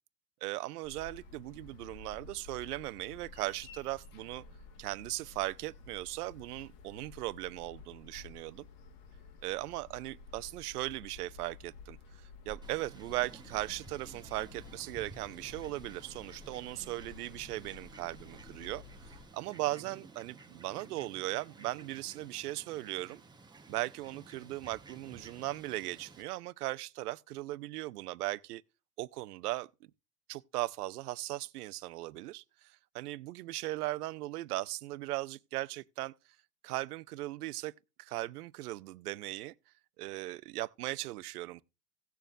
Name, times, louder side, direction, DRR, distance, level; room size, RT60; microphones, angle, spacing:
voice 1, 0.4-4.4 4.8-8.7 9.4-18.8 19.3-23.2 23.7-28.6 29.0-29.9 30.3-36.1 36.6-37.7 38.0-39.5 40.0-41.6, right 17 dB, 70° right, 0.7 m, -38 dB
sound 1, 0.8-19.3, left 4 dB, 45° left, 1.5 m, -52 dB
Fowl, 12.6-26.2, right 3 dB, 10° right, 1.1 m, -54 dB
17.5 x 6.9 x 2.5 m
hypercardioid pair, 100°, 47 cm